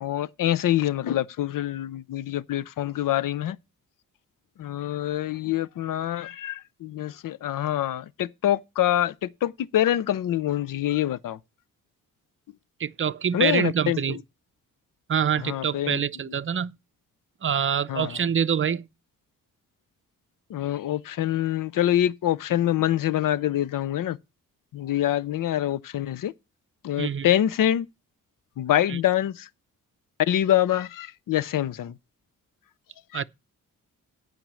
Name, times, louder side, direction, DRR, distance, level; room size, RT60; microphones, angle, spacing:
voice 1, 0.0-3.6 4.6-11.4 13.3-14.0 15.4-16.0 17.9-18.2 20.5-24.2 24.7-26.3 26.8-27.9 28.6-29.5 30.3-31.9 33.1-33.2, left 12 dB, 75° left, 0.6 m, -25 dB
voice 2, 12.8-14.2 15.1-16.8 17.4-18.9 27.0-27.3 28.9-29.0 33.1-33.2, right 7 dB, 40° right, 0.6 m, -25 dB
9.0 x 5.2 x 7.5 m
cardioid pair, 85°, 33 cm